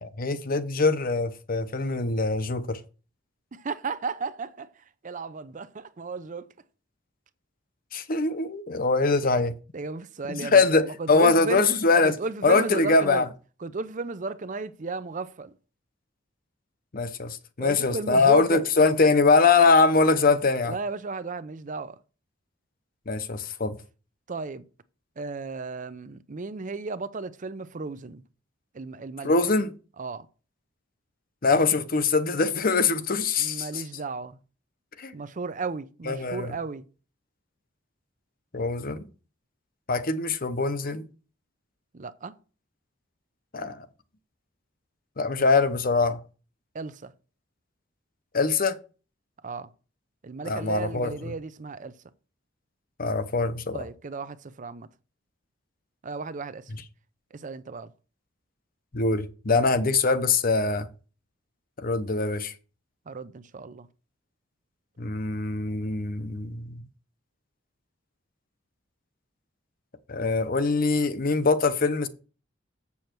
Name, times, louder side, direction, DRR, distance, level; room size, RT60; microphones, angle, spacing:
voice 1, 0.0-2.8 7.9-9.5 10.3-12.2 12.4-13.3 16.9-20.8 23.1-23.8 29.2-29.7 31.4-33.8 35.0-35.1 36.1-36.5 38.5-39.0 39.9-41.0 43.5-43.8 45.2-46.2 48.3-48.8 50.4-51.3 53.0-53.9 56.7-56.8 58.9-60.9 61.8-62.5 65.0-66.8 70.1-72.1, left 3 dB, 50° left, 0.8 m, -23 dB
voice 2, 3.5-4.7 5.0-6.5 9.7-11.7 12.0-13.3 13.6-15.5 17.6-18.6 20.7-22.0 24.3-24.6 25.2-28.2 28.7-29.3 30.0-30.3 33.4-34.4 35.1-36.8 41.9-42.3 46.7-47.1 49.4-49.7 50.2-51.9 53.7-54.9 56.0-56.7 57.3-57.9 63.1-63.9, right 3 dB, 40° right, 0.6 m, -34 dB
7.8 x 7.1 x 4.5 m
head